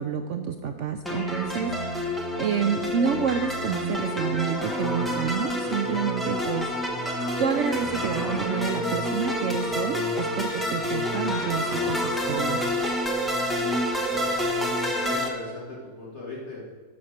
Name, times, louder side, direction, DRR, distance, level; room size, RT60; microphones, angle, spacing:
voice 1, 0.0-6.7 7.4-12.6, right 7 dB, 65° right, 7 dB, 0.8 m, -29 dB
sound 1, 1.0-15.3, left 1 dB, ahead, 1.3 m, -28 dB
Mallet percussion, 3.3-12.9, equal, 25° right, 1.3 m, -42 dB
voice 2, 14.0-14.3 14.6-16.6, left 2 dB, 45° left, -4 dB, 2.3 m, -39 dB
11.5 x 5.7 x 6.4 m, 1.5 s
omnidirectional pair, 1.6 m